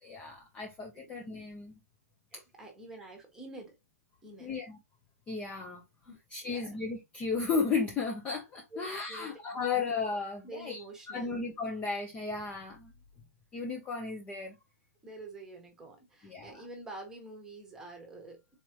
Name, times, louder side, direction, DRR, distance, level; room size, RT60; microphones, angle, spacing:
voice 1, 0.0-1.8 2.3-2.4 4.4-4.8 5.3-5.8 6.3-12.9 13.5-14.6 16.2-16.6, left 4 dB, 15° left, 0.6 m, -34 dB
voice 2, 2.3-3.8 4.2-4.5 6.1-6.2 6.4-6.8 8.7-9.3 10.4-11.4 15.0-18.4, right 2 dB, 5° right, 1.2 m, -47 dB
4.2 x 3.2 x 2.9 m
hypercardioid pair, 160°, 9 cm